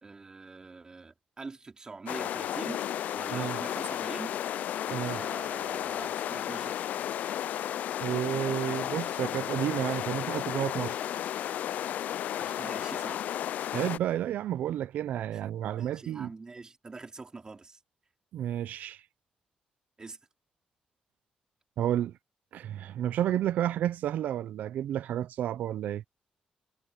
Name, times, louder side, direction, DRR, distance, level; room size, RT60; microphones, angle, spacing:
voice 1, 0.0-2.9 3.1-4.4 4.9-6.8 12.4-13.3 15.7-17.8 20.0-20.2, right 3 dB, 25° right, 4.0 m, -44 dB
sound 1, 2.1-14.0, left 11 dB, 75° left, 0.4 m, -33 dB
voice 2, 4.9-5.2 8.0-11.0 13.7-16.3 18.3-19.0 21.8-22.1 22.5-26.0, right 11 dB, 85° right, 0.6 m, -31 dB
cardioid pair, 110°, 3 cm